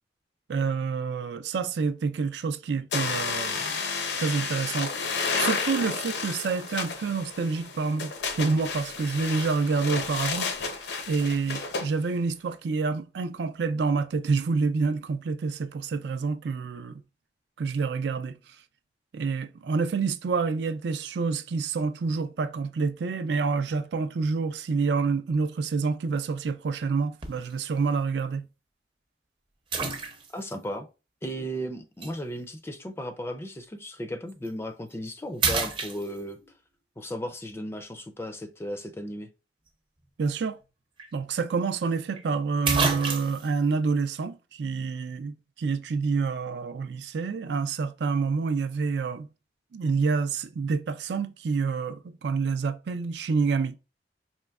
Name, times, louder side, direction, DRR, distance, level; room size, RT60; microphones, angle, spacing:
voice 1, 0.5-3.8 4.1-8.1 8.4-10.5 11.1-17.0 17.6-18.4 19.1-28.5 40.2-40.6 41.1-49.3 49.7-53.8, right 4 dB, 75° right, 0.4 m, -28 dB
sound 1, 2.9-11.9, left 4 dB, 75° left, 0.6 m, -31 dB
sound 2, 27.2-27.5 28.2-28.3 29.7-30.5 32.0-32.1 34.3-34.5 34.9-35.1 35.4-36.5 40.6-40.7 41.0-41.1 42.2-42.3 42.7-43.5, right 4 dB, 30° right, 0.6 m, -29 dB
voice 2, 30.3-30.9 31.2-36.4 37.0-39.3, equal, 15° left, 0.4 m, -35 dB
4.4 x 3.0 x 2.3 m
head